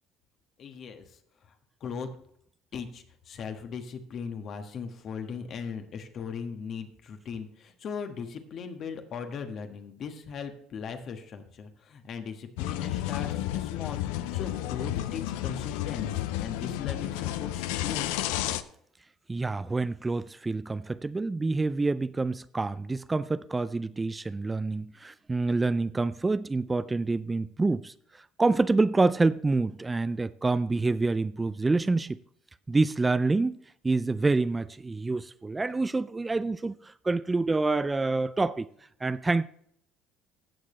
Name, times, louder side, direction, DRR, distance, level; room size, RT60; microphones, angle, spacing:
voice 1, 0.6-1.2 1.8-2.1 2.7-18.0, left 6 dB, 50° left, 1.4 m, -39 dB
sound 1, 12.6-18.6, left 13 dB, 75° left, 0.5 m, -31 dB
voice 2, 19.3-32.2 32.7-33.6 33.8-38.7 39.0-39.5, right 3 dB, 20° right, 0.4 m, -27 dB
15.5 x 6.6 x 3.2 m
hypercardioid pair, 65°, 0 cm